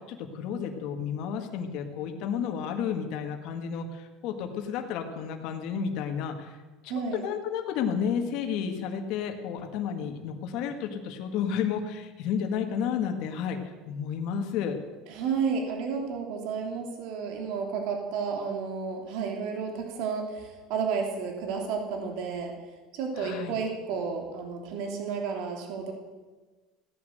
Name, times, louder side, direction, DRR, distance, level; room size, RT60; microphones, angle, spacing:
voice 1, 0.0-6.6 7.1-14.8 23.2-23.5, left 7 dB, 60° left, 4 dB, 1.9 m, -31 dB
voice 2, 6.9-7.2 15.1-22.5 22.9-25.9, right 5 dB, 65° right, 3 dB, 3.1 m, -32 dB
16.5 x 10.0 x 8.0 m, 1.3 s
cardioid pair, 145°, 0 cm